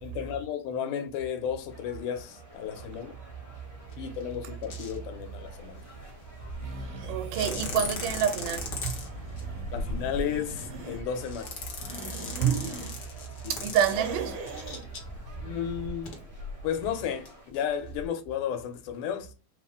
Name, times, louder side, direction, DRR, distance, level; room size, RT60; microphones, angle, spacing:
voice 1, 0.0-3.1 4.0-5.9 9.7-11.6 13.4-13.5 15.4-16.1 16.6-19.3, left 8 dB, 90° left, 2.3 m, -33 dB
sound 1, 1.7-17.5, right 1 dB, 20° right, 0.4 m, -52 dB
sound 2, 2.8-2.9 3.9-4.2 4.6-5.0 5.2-6.9 7.2-16.9 17.3-17.4 17.5-18.0, left 3 dB, 65° left, 1.0 m, -39 dB
sound 3, 6.6-11.0 11.6-12.9 13.8-14.8, right 1 dB, 70° right, 1.1 m, -40 dB
voice 2, 7.1-8.9 12.4-12.8 13.6-14.4, right 9 dB, 90° right, 2.3 m, -27 dB
5.1 x 2.4 x 3.6 m
omnidirectional pair, 3.7 m